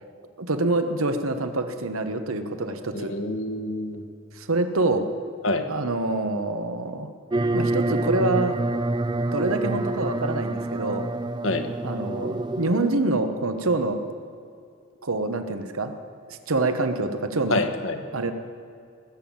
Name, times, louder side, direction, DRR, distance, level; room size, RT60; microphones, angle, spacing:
voice 1, 0.4-3.1 4.4-5.0 5.7-7.1 7.5-8.6 9.3-11.1 11.8-14.0 15.0-15.9 16.3-17.6 18.1-18.3, right 2 dB, 85° right, 8 dB, 1.2 m, -26 dB
voice 2, 2.9-4.0 5.4-5.7 11.4-11.7 17.5-18.0, left 2 dB, 70° left, 7 dB, 1.3 m, -27 dB
sound 1, 7.3-12.9, right 2 dB, 20° right, 0.3 m, -27 dB
20.0 x 7.4 x 8.7 m, 2.4 s
head